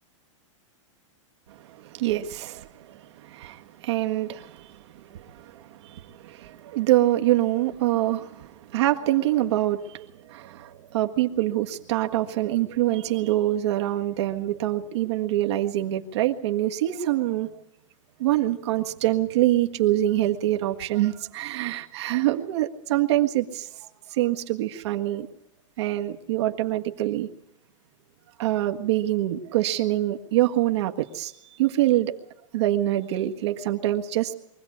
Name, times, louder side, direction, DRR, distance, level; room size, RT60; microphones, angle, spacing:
voice 1, 1.5-17.5 18.2-23.7 24.1-25.3 25.8-27.3 28.4-31.3 31.6-32.1 32.5-34.3, right 14 dB, 55° right, 4 dB, 1.7 m, -25 dB
23.5 x 16.0 x 8.7 m, 0.80 s
supercardioid pair, 160°, 17 cm